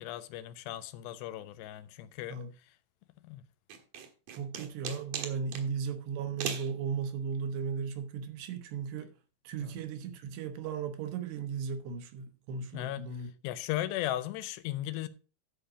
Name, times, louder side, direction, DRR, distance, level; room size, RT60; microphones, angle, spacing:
voice 1, 0.0-2.4 3.2-3.4 9.6-9.8 12.7-13.0 13.4-15.1, left 14 dB, 80° left, 2.7 m, -36 dB
sound 1, 3.7-5.7 6.4-6.7, right 7 dB, 60° right, 2.5 m, -38 dB
voice 2, 4.3-9.1 9.4-13.3, right 6 dB, 75° right, 3.2 m, -36 dB
12.5 x 5.1 x 5.0 m
omnidirectional pair, 5.0 m